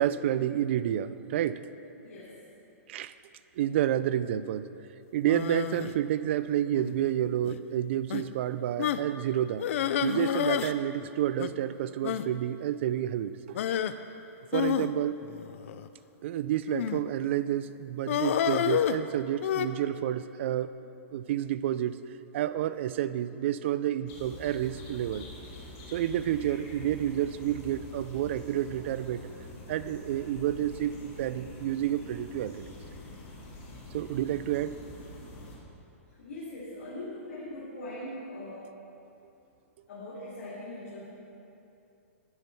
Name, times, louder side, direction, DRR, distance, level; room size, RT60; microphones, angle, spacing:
voice 1, 0.0-1.6 2.9-3.1 3.6-4.7 5.1-9.7 10.0-13.6 14.5-15.2 16.2-20.7 21.1-22.0 22.3-25.3 25.9-29.3 29.7-32.6 33.9-34.8, right 11 dB, 55° right, 14 dB, 0.4 m, -29 dB
voice 2, 2.0-2.4 36.2-38.7 39.9-41.1, left 1 dB, 75° left, -7 dB, 2.5 m, -41 dB
sound 1, 5.3-5.9 6.7-7.1 7.4-7.6 8.1-8.2 8.8-9.1 9.6-10.8 11.0-11.1 11.4-11.5 12.0-12.3 13.5-13.9 14.5-15.9 16.7-17.1 18.1-19.7, left 10 dB, 60° left, 0.4 m, -29 dB
sound 2, 24.1-35.6, left 2 dB, 30° left, 2.0 m, -46 dB
11.0 x 7.5 x 4.5 m, 2.8 s
hypercardioid pair, 150°, 8 cm